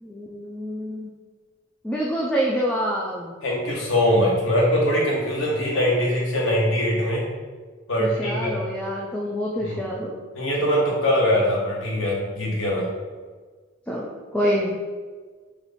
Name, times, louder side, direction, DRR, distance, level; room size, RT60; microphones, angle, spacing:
voice 1, 0.0-1.1 1.8-3.3 8.0-10.2 13.9-14.7, equal, 5° left, -4 dB, 0.3 m, -26 dB
voice 2, 3.4-7.2 7.9-8.6 9.6-9.8 10.3-12.9, equal, 90° left, -3 dB, 1.1 m, -22 dB
3.2 x 3.0 x 4.0 m, 1.4 s
head